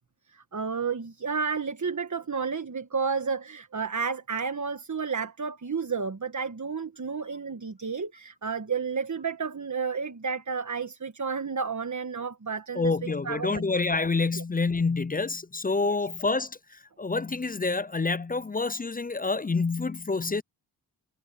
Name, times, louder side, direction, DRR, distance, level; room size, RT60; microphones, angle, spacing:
voice 1, 0.3-13.6 14.3-14.4 15.8-16.1, right 5 dB, 45° right, 1.4 m, -31 dB
voice 2, 12.8-16.6 17.0-20.4, left 3 dB, 20° left, 0.5 m, -27 dB
cardioid pair, 40°, 41 cm